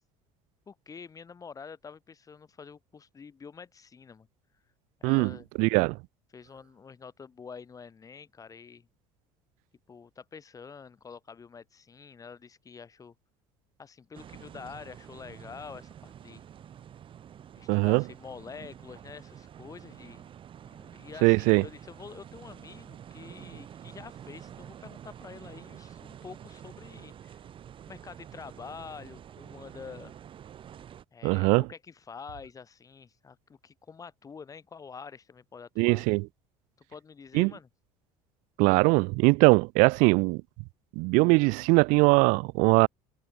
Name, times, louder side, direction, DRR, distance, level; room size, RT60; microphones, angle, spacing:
voice 1, 0.7-4.3 5.0-5.5 6.3-8.9 9.9-13.1 13.8-16.4 17.6-20.3 20.8-27.4 27.9-30.2 31.1-36.1 36.9-37.7, left 5 dB, 25° left, 4.4 m, -47 dB
voice 2, 5.6-6.0 17.7-18.0 21.2-21.6 31.2-31.7 35.8-36.3 37.3-37.5 38.6-40.4 41.0-42.9, right 29 dB, 75° right, 0.4 m, -21 dB
sound 1, 14.1-31.0, right 9 dB, 40° right, 3.6 m, -48 dB
cardioid pair, 115°, 13 cm